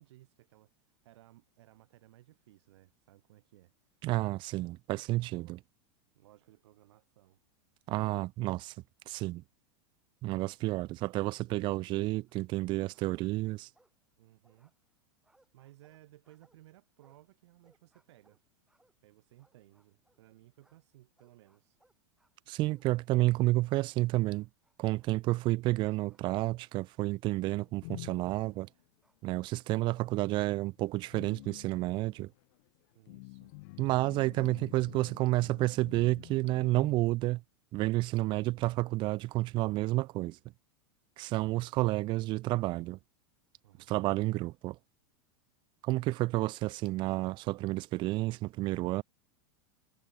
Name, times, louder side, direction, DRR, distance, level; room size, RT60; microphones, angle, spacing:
voice 1, 0.0-3.7 5.3-5.6 6.1-7.4 14.2-14.7 15.5-18.4 19.0-21.8 32.9-33.5 43.6-43.9, right 16 dB, 70° right, 4.9 m, -60 dB
voice 2, 4.0-5.6 7.9-8.7 9.1-9.4 10.2-13.7 22.5-24.5 24.8-28.7 29.2-32.3 33.8-37.4 37.7-40.4 41.2-43.0 43.9-44.8 45.8-49.0, right 19 dB, 30° right, 0.5 m, -30 dB
sound 1, 12.3-12.7 12.9-14.2 14.4-20.3 20.6-24.0 24.3-25.2 26.1-26.3 27.0-29.3 29.8-31.6, right 1 dB, 5° right, 5.2 m, -73 dB
sound 2, 27.5-28.7 29.7-30.0 30.4-36.9, left 28 dB, 50° left, 0.9 m, -49 dB
supercardioid pair, 145°, 15 cm